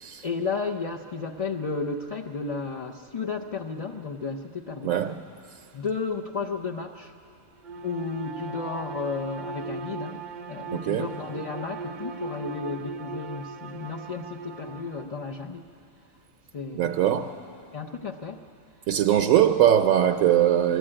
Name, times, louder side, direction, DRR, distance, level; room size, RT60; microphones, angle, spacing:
voice 1, 0.2-4.9 5.7-7.1 7.8-10.2 10.5-15.6 16.5-17.1 17.7-18.4 20.3-20.4, left 4 dB, 40° left, 0 dB, 0.5 m, -33 dB
voice 2, 4.8-5.1 10.9-11.1 16.7-17.3 18.9-20.8, right 10 dB, 75° right, 6 dB, 1.0 m, -21 dB
Bowed string instrument, 7.6-15.1, right 4 dB, 50° right, 0.6 m, -38 dB
21.5 x 13.5 x 8.8 m, 2.7 s
omnidirectional pair, 1.5 m